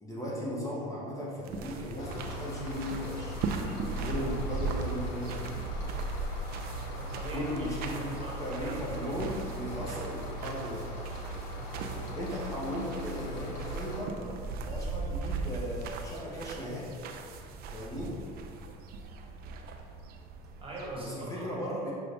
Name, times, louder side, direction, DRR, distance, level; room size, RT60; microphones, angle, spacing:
voice 1, 0.0-3.4 4.0-5.6 7.3-8.1 8.4-10.9 12.1-14.3 14.6-16.9 17.7-18.2 21.0-21.9, equal, 15° left, -5 dB, 1.0 m, -37 dB
sound 1, 1.4-21.0, right 3 dB, 50° right, 0.4 m, -39 dB
sound 2, 2.0-14.0, equal, 65° left, 0.7 m, -40 dB
voice 2, 7.0-7.5 7.8-8.4 11.5-12.1 18.0-18.1 20.6-21.6, right 1 dB, 25° right, -4 dB, 1.2 m, -41 dB
5.9 x 2.3 x 3.5 m, 2.3 s
hypercardioid pair, 75°, 21 cm